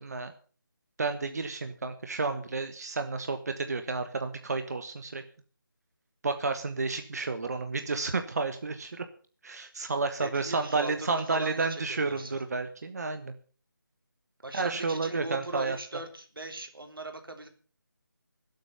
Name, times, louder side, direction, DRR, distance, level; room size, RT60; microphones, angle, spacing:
voice 1, 0.0-0.3 1.0-5.2 6.2-9.0 9.4-13.3 14.5-15.8, right 3 dB, 50° right, 8 dB, 1.4 m, -31 dB
voice 2, 10.2-12.4 14.4-17.5, right 2 dB, 85° right, 6 dB, 3.5 m, -39 dB
17.5 x 8.2 x 6.8 m, 0.41 s
figure-of-eight pair, 165°, 11 cm